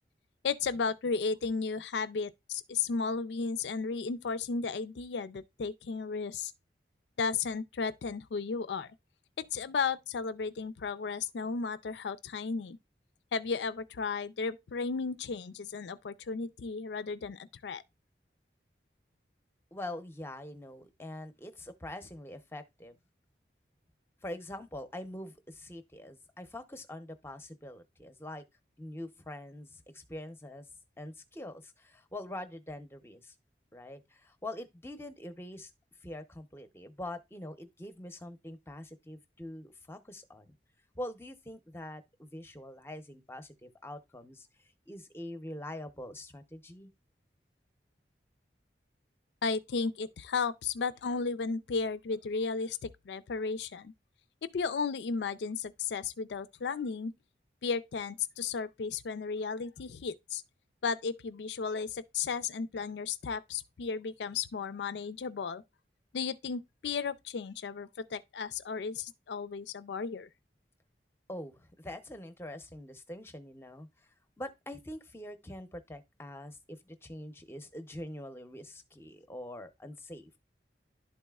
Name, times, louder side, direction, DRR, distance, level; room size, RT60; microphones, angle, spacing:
voice 1, 0.4-6.5 7.2-8.9 9.4-12.8 13.3-17.8 49.4-53.9 54.4-57.1 57.6-60.4 60.8-65.6 66.1-70.3, left 5 dB, 80° left, 0.4 m, -34 dB
voice 2, 19.7-23.0 24.2-28.4 28.8-30.7 31.0-33.3 33.7-35.7 36.0-40.5 40.9-44.5 44.9-46.9 71.3-73.9 74.4-80.4, left 1 dB, 15° left, 0.6 m, -44 dB
11.5 x 4.1 x 2.3 m
head